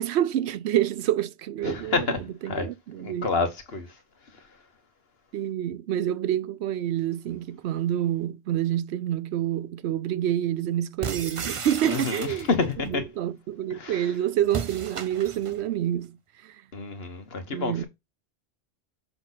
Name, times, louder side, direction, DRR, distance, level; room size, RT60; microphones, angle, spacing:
voice 1, 0.0-3.3 5.3-16.2 16.4-16.5 17.5-17.8, right 11 dB, 90° right, 0.9 m, -28 dB
voice 2, 1.6-2.2 2.5-2.7 3.0-3.9 11.8-13.0 13.7-14.0 16.7-17.8, left 4 dB, 70° left, 1.6 m, -28 dB
sound 1, 11.0-12.7 14.5-15.6, right 5 dB, 35° right, 0.6 m, -34 dB
6.9 x 4.1 x 4.0 m
omnidirectional pair, 1.1 m